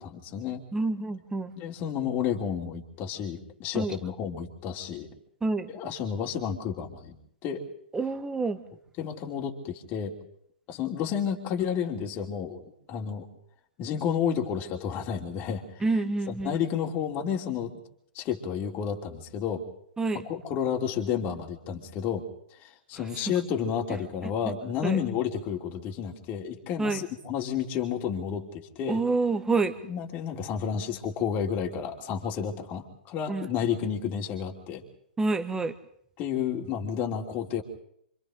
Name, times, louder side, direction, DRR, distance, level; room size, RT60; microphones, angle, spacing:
voice 1, 0.0-0.6 1.6-5.1 5.7-7.1 7.4-7.7 9.0-10.1 10.7-12.6 12.9-13.3 13.8-15.8 16.3-17.7 18.1-19.6 20.3-22.2 22.6-29.0 29.8-34.8 36.2-37.6, left 8 dB, 30° left, 1 dB, 3.0 m, -31 dB
voice 2, 0.7-1.5 3.7-4.0 5.4-5.7 7.9-8.6 15.8-16.6 20.0-20.2 23.2-23.3 24.8-25.0 26.8-27.0 28.9-29.8 33.3-33.5 35.2-35.7, right 3 dB, 10° right, 11 dB, 1.4 m, -27 dB
27.0 x 26.0 x 3.9 m, 0.68 s
hypercardioid pair, 130°, 6 cm